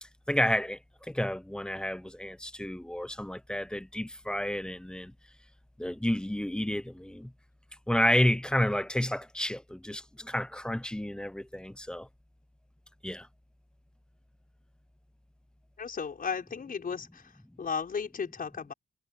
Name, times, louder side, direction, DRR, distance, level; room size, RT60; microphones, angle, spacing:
voice 1, 0.0-5.1 5.8-7.3 7.9-12.1 13.0-13.3, left 1 dB, 5° left, 0.8 m, -30 dB
voice 2, 15.8-17.2 17.6-18.7, left 6 dB, 40° left, 5.8 m, -34 dB
wide cardioid pair, 140°, 21 cm